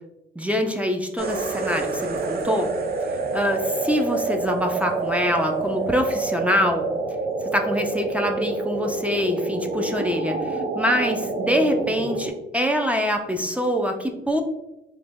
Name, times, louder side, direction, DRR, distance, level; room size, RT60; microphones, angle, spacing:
voice 1, 0.4-2.7 3.3-6.8 7.4-14.4, equal, 5° right, 3 dB, 0.5 m, -24 dB
sound 1, 1.2-12.3, right 3 dB, 50° right, 0.6 m, -27 dB
3.1 x 2.9 x 3.5 m, 0.92 s
cardioid pair, 90°, 20 cm